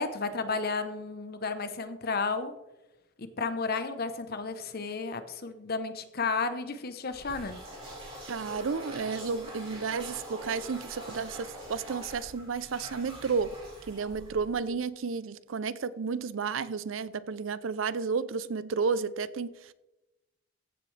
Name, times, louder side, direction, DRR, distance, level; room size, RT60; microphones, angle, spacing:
voice 1, 0.0-2.5 3.2-7.6, left 4 dB, 50° left, 0.9 m, -32 dB
sound 1, 7.1-14.7, right 1 dB, 30° right, 3.5 m, -44 dB
voice 2, 8.3-13.5 13.9-19.7, right 5 dB, 75° right, 0.5 m, -32 dB
15.0 x 7.6 x 3.3 m
head